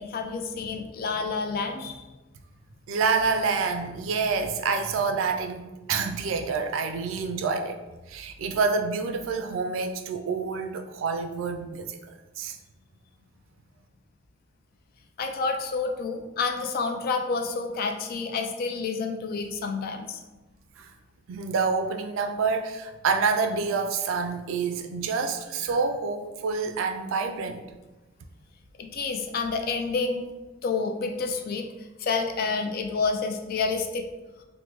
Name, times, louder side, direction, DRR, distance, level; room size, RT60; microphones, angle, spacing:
voice 1, 0.0-2.0 15.2-20.2 28.8-30.2 30.6-31.7 32.0-34.1, left 4 dB, 50° left, 4 dB, 0.3 m, -29 dB
voice 2, 2.9-7.8 8.1-12.6 20.8-20.9 21.3-27.6, right 4 dB, 85° right, 6 dB, 0.3 m, -27 dB
3.1 x 2.1 x 2.9 m, 1.1 s
head